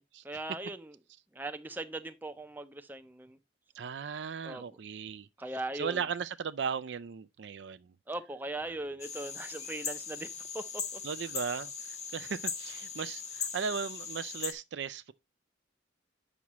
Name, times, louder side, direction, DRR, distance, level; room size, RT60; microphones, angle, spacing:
voice 1, 0.2-0.9 1.3-3.4 4.4-4.6 5.4-6.0 8.1-10.3 10.5-11.0, right 2 dB, 10° right, 0.5 m, -39 dB
voice 2, 3.7-5.3 5.7-7.9 11.0-15.1, right 6 dB, 60° right, 0.4 m, -37 dB
sound 1, 9.0-14.5, left 6 dB, 35° left, 1.0 m, -39 dB
8.3 x 6.1 x 3.0 m
head